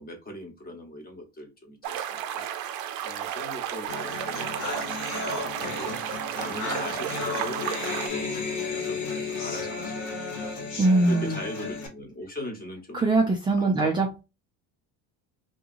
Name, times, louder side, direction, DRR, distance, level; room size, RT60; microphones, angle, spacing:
voice 1, 0.0-2.4 3.0-4.8 5.2-6.0 6.3-7.6 8.1-10.7 11.1-13.0 13.6-13.9, left 1 dB, 20° left, 1.0 m, -40 dB
sound 1, 1.8-8.1, right 10 dB, 60° right, 0.5 m, -33 dB
sound 2, 3.9-11.9, left 4 dB, 90° left, 1.5 m, -33 dB
voice 2, 10.8-11.4 12.9-14.2, right 2 dB, 15° right, 0.3 m, -22 dB
2.8 x 2.7 x 2.5 m
cardioid pair, 130°, 40 cm